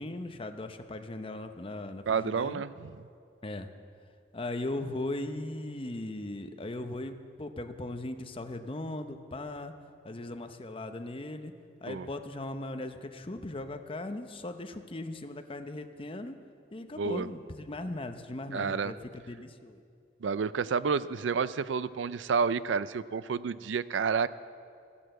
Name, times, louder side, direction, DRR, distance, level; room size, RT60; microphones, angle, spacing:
voice 1, 0.0-2.6 3.4-3.7 4.3-9.7 10.0-11.5 11.8-16.3 16.7-19.8, left 2 dB, 30° left, 7 dB, 0.8 m, -38 dB
voice 2, 2.1-2.9 11.9-12.1 17.0-17.3 18.5-18.9 20.2-24.3, right 5 dB, 90° right, 16 dB, 0.4 m, -30 dB
15.0 x 11.0 x 7.8 m, 2.4 s
head